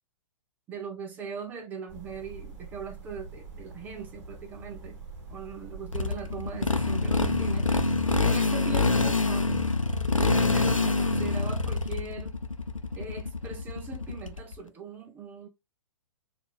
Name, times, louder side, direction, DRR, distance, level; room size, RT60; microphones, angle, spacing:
voice 1, 0.7-5.0 5.3-7.7 8.2-9.6 10.2-12.4 13.0-15.5, right 5 dB, 10° right, 0.3 m, -40 dB
sound 1, 1.9-7.7, right 3 dB, 30° right, 1.2 m, -45 dB
Motorcycle, 5.9-14.5, left 3 dB, 90° left, 0.6 m, -26 dB
4.2 x 2.4 x 3.2 m
figure-of-eight pair, 120°, 16 cm